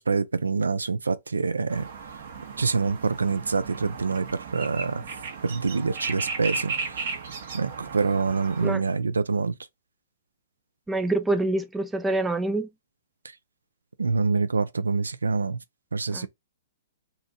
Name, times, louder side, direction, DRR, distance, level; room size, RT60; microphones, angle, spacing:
voice 1, 0.0-1.9 2.6-5.0 5.4-7.1 7.5-9.5 14.0-15.6 15.9-16.3, right 4 dB, 85° right, 0.4 m, -26 dB
sound 1, 1.7-8.7, right 4 dB, 60° right, 1.0 m, -36 dB
voice 2, 10.9-12.7 16.1-16.3, right 2 dB, 10° right, 0.4 m, -26 dB
2.8 x 2.5 x 3.5 m
hypercardioid pair, 120°, 0 cm